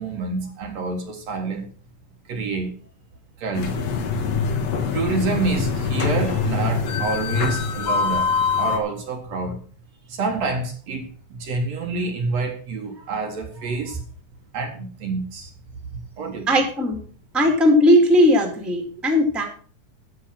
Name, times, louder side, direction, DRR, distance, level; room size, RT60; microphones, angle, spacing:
voice 1, 0.0-1.7 2.3-2.7 3.4-3.7 4.9-9.6 10.1-14.0 14.5-15.5 15.9-16.5, right 3 dB, 60° right, 2.6 m, -27 dB
sound 1, 3.5-8.8, left 5 dB, 60° left, 2.3 m, -24 dB
voice 2, 16.5-17.0 17.3-19.4, left 1 dB, ahead, 1.7 m, -17 dB
10.5 x 7.4 x 5.9 m
omnidirectional pair, 3.6 m